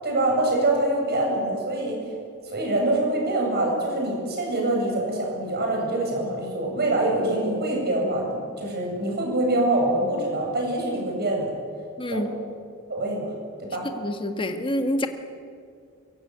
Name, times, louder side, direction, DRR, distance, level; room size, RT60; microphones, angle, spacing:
voice 1, 0.0-2.1 2.5-11.5 12.1-12.3 12.9-13.3 13.6-13.9, right 1 dB, 45° right, 0 dB, 7.9 m, -25 dB
voice 2, 12.0-12.3 13.9-15.1, left 1 dB, 25° left, 6 dB, 1.7 m, -27 dB
24.0 x 22.0 x 9.5 m, 2.3 s
head